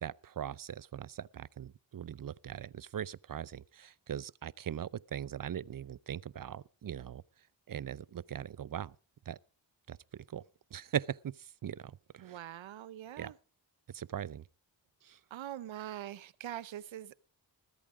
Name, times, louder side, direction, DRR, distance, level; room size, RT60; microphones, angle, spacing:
voice 1, 0.0-7.2 7.7-8.9 9.3-9.4 9.9-10.4 10.7-11.3 11.6-12.4 13.2-13.3 13.9-14.4 15.0-15.2, right 9 dB, 45° right, 0.6 m, -40 dB
voice 2, 12.2-13.3 15.3-17.2, right 11 dB, 80° right, 0.8 m, -43 dB
20.5 x 8.7 x 4.9 m
cardioid pair, 45°, 46 cm